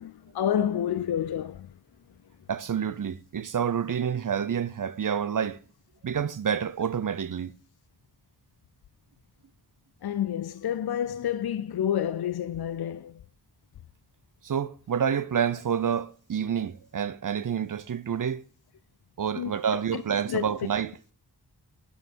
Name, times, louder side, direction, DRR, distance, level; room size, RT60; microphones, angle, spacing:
voice 1, 0.0-1.7 10.0-13.2 19.4-20.0 20.3-20.4, left 10 dB, 70° left, 0.5 m, -29 dB
voice 2, 2.5-5.6 6.0-7.5 14.4-18.4 19.2-20.9, right 8 dB, 55° right, 0.5 m, -28 dB
10.5 x 5.4 x 6.1 m
wide cardioid pair, 85°, 39 cm